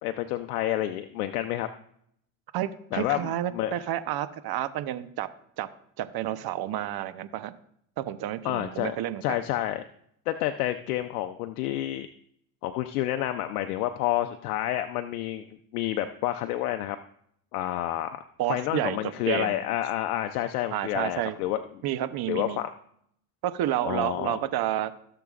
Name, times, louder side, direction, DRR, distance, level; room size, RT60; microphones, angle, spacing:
voice 1, 0.0-1.7 2.9-3.7 8.4-8.9 9.2-9.8 10.3-12.1 12.6-17.0 17.5-18.2 18.5-21.6 22.3-22.7 23.8-24.4, left 13 dB, 85° left, 7 dB, 0.7 m, -29 dB
voice 2, 2.5-5.3 5.6-5.7 6.0-7.5 8.0-9.4 18.4-19.0 19.3-19.6 20.7-21.4 21.8-22.6 23.4-24.9, right 12 dB, 55° right, 12 dB, 0.9 m, -30 dB
16.5 x 6.8 x 2.5 m, 0.69 s
hypercardioid pair, 75°, 45 cm